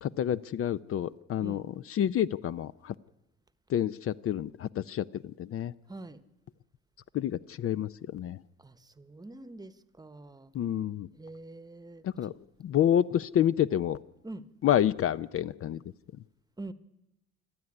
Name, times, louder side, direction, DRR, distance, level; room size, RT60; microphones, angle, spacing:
voice 1, 0.0-2.9 3.7-5.7 7.1-8.4 10.5-11.1 12.0-12.3 12.6-14.0 14.6-15.8, left 10 dB, 50° left, 15 dB, 0.6 m, -28 dB
voice 2, 5.9-6.2 8.6-10.5 11.2-12.0 14.2-14.5 16.6-16.7, right 2 dB, 15° right, 14 dB, 1.0 m, -44 dB
27.5 x 9.5 x 9.8 m, 0.95 s
cardioid pair, 105°, 29 cm